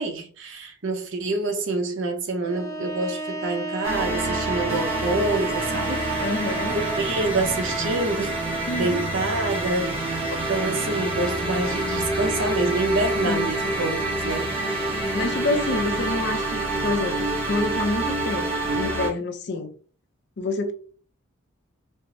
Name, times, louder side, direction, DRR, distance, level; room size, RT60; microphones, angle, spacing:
voice 1, 0.0-6.0 6.7-9.9 10.5-14.5, right 2 dB, 60° right, 0.7 m, -27 dB
Bowed string instrument, 2.4-7.3, right 2 dB, 15° left, 0.7 m, -32 dB
sound 1, 3.8-19.1, right 2 dB, 30° right, 1.1 m, -27 dB
voice 2, 6.2-6.8 8.6-9.0 13.2-13.5 15.1-19.7 20.4-20.7, left 2 dB, 55° left, 0.5 m, -27 dB
4.4 x 2.0 x 2.6 m
head